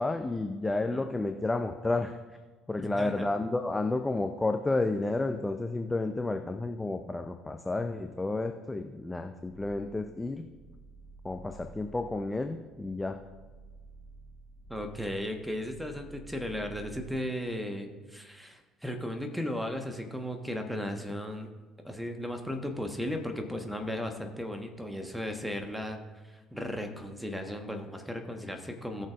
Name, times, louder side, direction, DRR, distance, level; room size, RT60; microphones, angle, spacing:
voice 1, 0.0-2.2 2.7-10.5 11.2-13.2, left 2 dB, 15° left, 7 dB, 0.6 m, -31 dB
voice 2, 0.7-1.1 2.8-3.3 14.7-21.5 21.8-26.0 26.2-29.1, left 1 dB, ahead, 5 dB, 1.3 m, -36 dB
sound 1, 9.4-17.1, right 3 dB, 70° left, 2.7 m, -51 dB
17.5 x 6.5 x 2.5 m, 1.4 s
figure-of-eight pair, 55°, 0 cm